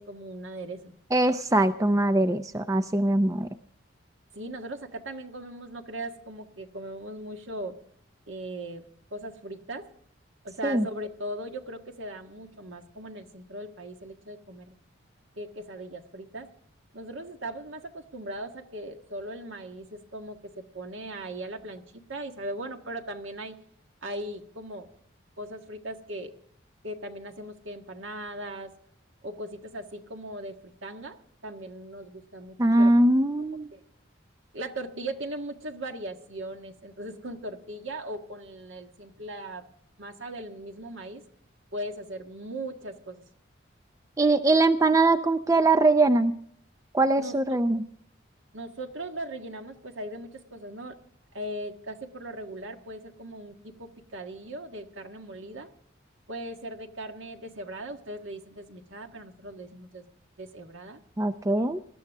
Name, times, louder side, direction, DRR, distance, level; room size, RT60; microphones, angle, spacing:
voice 1, 0.0-0.9 4.3-7.8 8.3-8.8 9.1-9.9 10.4-14.7 15.4-16.5 16.9-23.6 24.0-24.9 25.4-26.3 26.8-28.7 29.2-32.9 33.7-33.8 34.5-39.6 40.0-41.2 41.7-43.2 47.2-47.6 48.5-51.0 51.3-55.7 56.3-60.1 60.4-61.0, right 1 dB, 75° right, 4 dB, 1.7 m, -39 dB
voice 2, 1.1-3.5 10.6-10.8 32.6-33.7 44.2-46.4 46.9-47.8 61.2-61.8, right 2 dB, 15° right, 10 dB, 0.4 m, -22 dB
20.0 x 12.5 x 3.5 m, 0.64 s
head